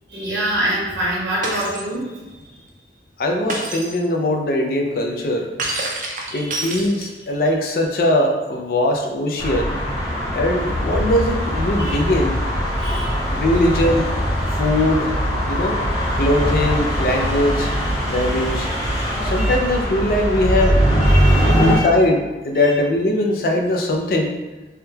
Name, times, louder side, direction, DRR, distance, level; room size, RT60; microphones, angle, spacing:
voice 1, 0.1-2.1 6.2-6.6 11.8-11.9 12.8-13.2 19.4-19.6 21.0-21.9, right 1 dB, 80° right, -6 dB, 1.2 m, -26 dB
Shatter, 1.4-1.9 3.5-4.0 5.6-7.3, right 2 dB, 45° right, 0.5 m, -27 dB
voice 2, 3.2-5.5 6.3-9.8 10.3-12.4 13.3-14.1 14.6-15.2 15.5-15.8 16.2-17.8 18.0-18.7 19.2-20.8 21.6-24.3, left 1 dB, 55° left, 2 dB, 0.4 m, -20 dB
sound 1, 9.4-21.7, equal, 20° left, 0.8 m, -21 dB
3.5 x 2.2 x 2.7 m, 1.2 s
head